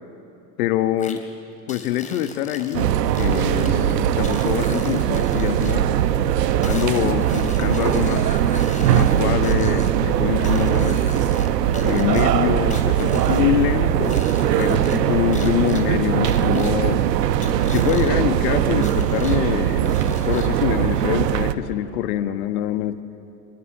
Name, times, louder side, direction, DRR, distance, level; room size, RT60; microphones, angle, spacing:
voice 1, 0.6-1.2 1.7-5.9 6.6-8.3 8.9-11.0 11.8-14.2 14.6-17.0 17.7-23.0, left 12 dB, 60° left, 11 dB, 1.5 m, -24 dB
sound 1, 1.0-1.2 1.7-3.7 4.2-5.7 6.6-9.9 10.4-11.5 11.7-13.5 14.0-15.0 15.3-15.8 16.2-16.7 17.4-18.1 18.8-19.4 19.8-20.6, left 4 dB, 15° left, 3.5 m, -40 dB
sound 2, 2.7-21.5, right 10 dB, 75° right, 1.2 m, -20 dB
26.0 x 23.0 x 8.7 m, 3.0 s
hypercardioid pair, 90°, 49 cm